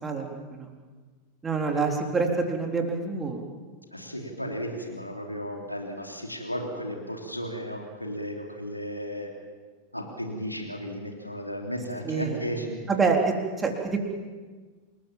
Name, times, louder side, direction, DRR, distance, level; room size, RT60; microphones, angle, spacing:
voice 1, 0.0-0.7 1.4-3.4 12.0-12.4 12.9-14.0, right 4 dB, 15° right, 2 dB, 4.0 m, -27 dB
voice 2, 3.9-9.3 9.9-12.8, equal, 90° left, 2 dB, 3.3 m, -34 dB
28.0 x 20.5 x 7.4 m, 1.4 s
figure-of-eight pair, 90°, 0 cm